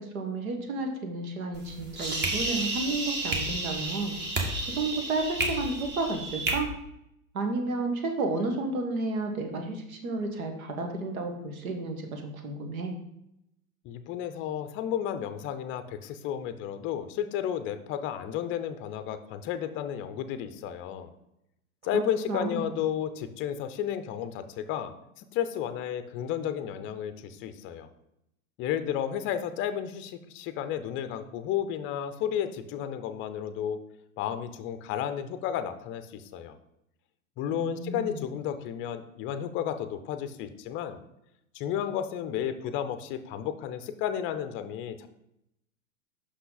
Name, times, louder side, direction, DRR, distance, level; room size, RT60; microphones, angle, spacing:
voice 1, 0.1-4.2 4.6-6.7 7.3-12.9 21.9-22.0 22.3-22.8 37.5-38.2, right 3 dB, 70° right, 4 dB, 1.5 m, -32 dB
sound 1, 1.5-6.5, right 2 dB, 25° right, 1.4 m, -31 dB
voice 2, 13.8-21.1 21.8-27.9 28.6-33.8 34.2-36.6 37.4-41.0 41.5-45.1, left 9 dB, 30° left, 10 dB, 0.5 m, -32 dB
5.8 x 5.7 x 3.9 m, 0.82 s
hypercardioid pair, 105°, 43 cm